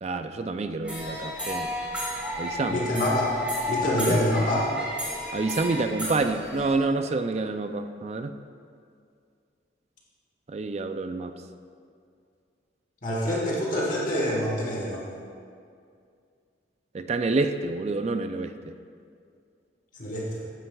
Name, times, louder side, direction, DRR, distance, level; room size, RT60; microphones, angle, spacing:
voice 1, 0.0-1.7 2.4-2.9 4.1-4.2 5.3-8.3 10.5-11.3 16.9-18.5, right 3 dB, 35° right, 8 dB, 0.4 m, -28 dB
sound 1, 0.8-6.8, left 1 dB, 5° right, 2.7 m, -32 dB
voice 2, 2.7-3.3 3.7-4.6 13.0-15.0 20.0-20.3, left 1 dB, 45° left, -4 dB, 1.6 m, -26 dB
15.5 x 9.9 x 2.3 m, 2.3 s
head